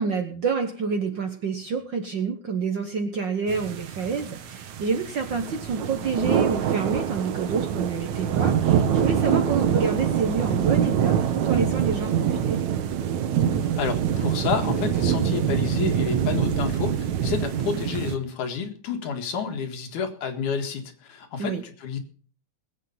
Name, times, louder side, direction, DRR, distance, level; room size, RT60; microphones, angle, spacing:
voice 1, 0.0-12.6 21.4-21.6, right 5 dB, 55° right, 5 dB, 1.3 m, -28 dB
sound 1, 3.5-18.2, right 8 dB, 70° right, 2.4 m, -25 dB
voice 2, 13.6-22.0, left 6 dB, 85° left, 5 dB, 3.3 m, -30 dB
20.5 x 8.3 x 5.5 m, 0.43 s
omnidirectional pair, 3.4 m